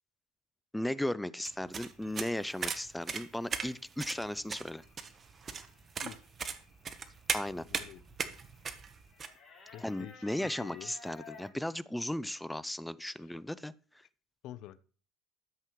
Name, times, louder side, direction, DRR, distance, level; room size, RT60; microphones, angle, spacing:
voice 1, 0.7-4.8 7.3-7.7 9.8-13.7, left 1 dB, 5° left, 0.4 m, -36 dB
sound 1, 1.4-9.3, right 6 dB, 30° right, 1.0 m, -38 dB
sound 2, 1.7-11.5, left 5 dB, 20° left, 5.5 m, -58 dB
voice 2, 7.7-8.0 9.7-10.1 10.4-10.9 14.4-14.8, left 12 dB, 60° left, 0.6 m, -47 dB
12.5 x 7.4 x 3.1 m
supercardioid pair, 105°, 0 cm